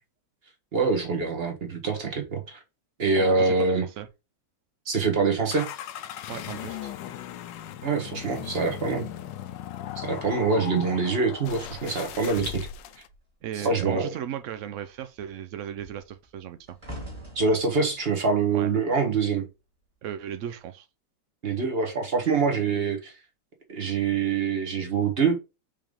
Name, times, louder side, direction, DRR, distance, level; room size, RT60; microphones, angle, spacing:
voice 1, 0.7-2.6 3.0-3.9 4.9-5.7 7.8-9.1 10.0-12.7 13.6-14.1 17.3-19.5 21.4-23.1 23.7-25.4, right 4 dB, 35° right, 1.5 m, -25 dB
voice 2, 3.2-4.1 6.3-6.9 13.4-16.8 18.5-18.7 20.0-20.9, right 10 dB, 75° right, 0.7 m, -36 dB
sound 1, 5.5-13.1, left 11 dB, 80° left, 1.3 m, -38 dB
sound 2, 10.6-13.3 13.6-14.0 14.3-19.6 20.4-20.6, right 1 dB, 20° right, 2.4 m, -47 dB
5.4 x 3.5 x 5.0 m
omnidirectional pair, 1.9 m